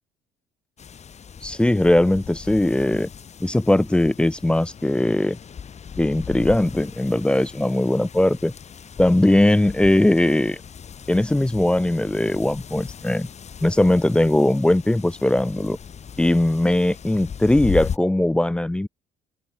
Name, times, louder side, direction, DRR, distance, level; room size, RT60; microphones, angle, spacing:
sound 1, 0.8-18.0, left 7 dB, 40° left, 7.7 m, -37 dB
voice 1, 1.4-3.1 3.4-5.4 6.0-8.5 9.0-10.6 11.1-13.3 13.6-15.8 16.2-18.9, left 1 dB, 5° left, 0.3 m, -19 dB
open air
cardioid pair, 110°, 17 cm